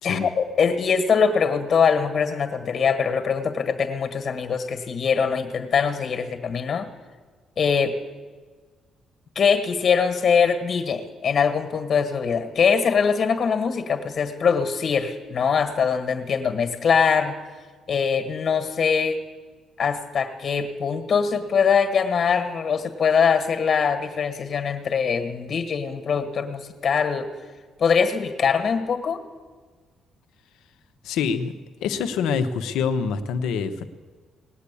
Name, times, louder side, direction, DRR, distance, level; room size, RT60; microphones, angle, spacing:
voice 1, 0.0-6.9 7.6-7.9 9.3-17.3 17.9-19.2 19.8-27.3 27.8-29.2, left 6 dB, 55° left, 8 dB, 1.6 m, -22 dB
voice 2, 31.0-31.5 31.8-33.9, left 6 dB, 90° left, 8 dB, 0.9 m, -25 dB
19.0 x 8.4 x 8.4 m, 1.4 s
cardioid pair, 90°, 0 cm